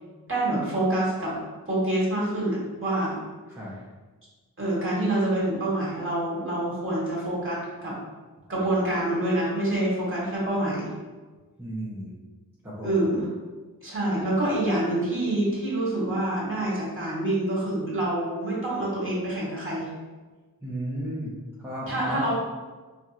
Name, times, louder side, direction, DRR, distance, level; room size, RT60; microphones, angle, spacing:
voice 1, 0.3-1.4 1.7-3.2 4.6-8.0 8.5-10.9 12.8-13.3 13.8-19.9 21.9-22.3, right 1 dB, 35° right, -7 dB, 1.5 m, -26 dB
voice 2, 11.6-12.2 12.6-13.0 20.6-22.3, right 1 dB, 5° right, -9 dB, 0.8 m, -34 dB
4.4 x 2.6 x 2.5 m, 1.3 s
wide cardioid pair, 70°, 37 cm